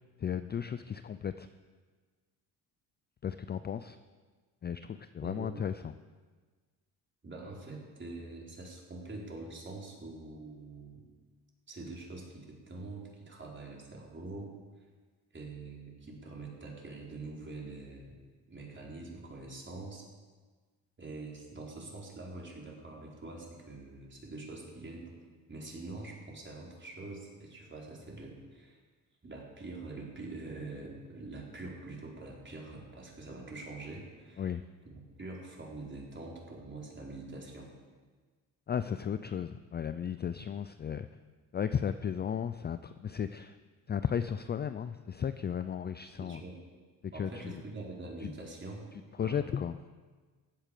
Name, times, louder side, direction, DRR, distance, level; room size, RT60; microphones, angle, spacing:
voice 1, 0.2-1.5 3.2-4.0 4.6-5.9 34.4-34.6 38.7-41.1 41.5-43.6 43.9-46.4 47.0-47.5 48.2-48.3 49.2-49.8, left 8 dB, 25° left, 12 dB, 0.4 m, -35 dB
voice 2, 5.2-5.6 7.2-11.0 11.7-14.5 15.3-18.1 18.5-20.1 21.0-25.1 25.5-28.8 29.2-34.5 34.8-37.7 46.2-46.6 47.1-48.9 49.2-49.4, right 2 dB, 25° right, -2 dB, 4.5 m, -45 dB
15.5 x 8.8 x 6.8 m, 1.4 s
supercardioid pair, 75°, 42 cm